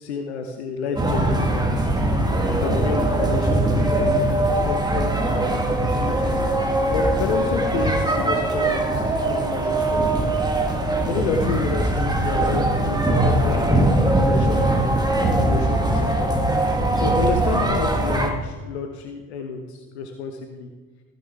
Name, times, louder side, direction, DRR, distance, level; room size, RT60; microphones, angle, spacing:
voice 1, 0.0-1.9 2.6-4.3 4.6-6.5 6.9-10.4 11.1-13.0 13.2-16.3 16.9-20.7, left 5 dB, 85° left, 4 dB, 0.8 m, -30 dB
sound 1, 1.0-18.3, right 1 dB, 10° right, 1.6 m, -21 dB
14.5 x 7.1 x 3.5 m, 1.4 s
hypercardioid pair, 50°, 32 cm